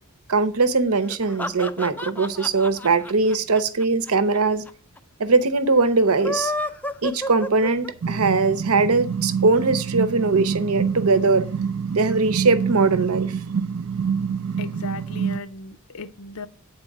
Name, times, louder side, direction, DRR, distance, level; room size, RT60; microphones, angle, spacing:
voice 1, 0.3-4.6 5.2-6.5 7.0-11.5 11.9-13.3, right 3 dB, 85° right, 0.8 m, -20 dB
sound 1, 1.0-4.4 4.7-4.8 5.0-5.1 6.0-8.2, left 1 dB, 10° left, 0.4 m, -30 dB
sound 2, 8.0-15.4, right 6 dB, 70° right, 0.4 m, -27 dB
voice 2, 14.6-16.5, left 4 dB, 85° left, 0.6 m, -36 dB
8.9 x 4.3 x 7.4 m
head